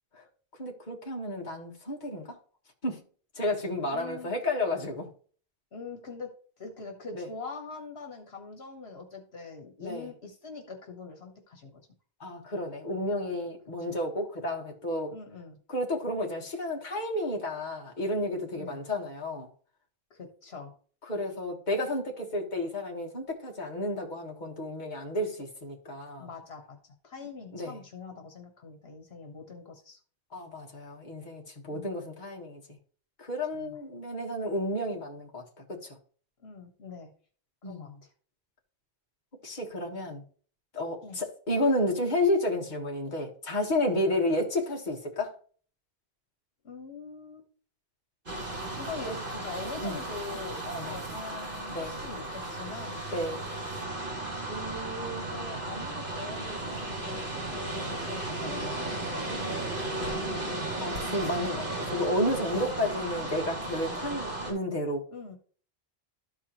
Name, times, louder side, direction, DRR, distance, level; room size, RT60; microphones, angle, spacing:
voice 1, 0.6-2.4 2.8-3.0 3.3-5.1 7.2-7.3 9.8-10.1 12.2-15.1 15.7-19.5 21.1-26.3 27.5-27.7 30.3-32.6 33.2-35.4 35.7-35.9 37.6-37.9 39.4-40.2 40.7-45.3 49.8-50.0 50.7-51.0 51.7-52.0 53.1-53.4 60.8-65.0, left 1 dB, 45° left, 1.6 m, -31 dB
voice 2, 3.9-4.3 5.7-6.3 6.6-11.8 15.1-15.6 18.6-18.8 20.1-20.7 26.2-26.8 27.0-30.0 31.7-31.9 33.5-33.8 36.4-37.1 37.6-38.1 41.0-41.2 44.0-44.2 46.6-47.5 48.8-50.6 50.9-53.0 54.3-60.4 62.6-62.7 65.1-65.4, left 3 dB, 75° left, 1.6 m, -43 dB
sound 1, 48.3-64.5, right 2 dB, 55° right, 2.7 m, -35 dB
13.0 x 4.8 x 3.0 m
omnidirectional pair, 1.1 m